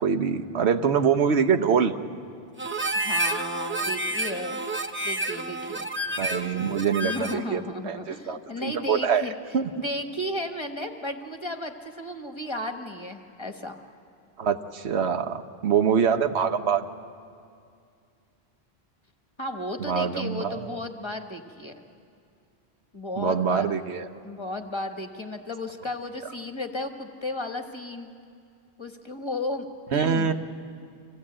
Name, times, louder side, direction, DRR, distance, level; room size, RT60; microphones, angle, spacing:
voice 1, 0.0-1.9 6.2-9.2 9.5-9.7 14.4-16.9 19.8-20.7 23.2-24.1 29.9-30.3, right 7 dB, 75° right, 9 dB, 1.1 m, -24 dB
Harmonica, 2.6-7.5, right 1 dB, 15° right, 0.5 m, -29 dB
voice 2, 3.0-4.6 5.0-5.9 7.0-9.3 9.8-13.8 19.4-21.8 22.9-23.7 24.2-28.1 28.8-29.7 29.9-30.3, left 1 dB, 25° left, 5 dB, 1.2 m, -34 dB
26.0 x 16.5 x 8.6 m, 2.3 s
omnidirectional pair, 1.1 m